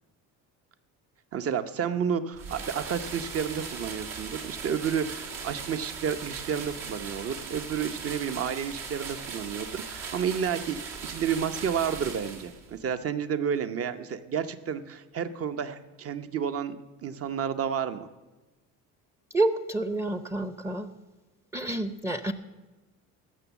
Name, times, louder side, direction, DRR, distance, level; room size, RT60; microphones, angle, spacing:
voice 1, 1.3-16.8 17.0-18.1, right 7 dB, 40° right, 11 dB, 0.9 m, -31 dB
sound 1, 2.3-12.8, right 5 dB, 70° right, 2.1 m, -39 dB
voice 2, 19.3-20.9 21.5-22.3, right 2 dB, 10° right, 11 dB, 0.6 m, -28 dB
15.0 x 6.2 x 7.2 m, 1.1 s
cardioid pair, 100°, 35 cm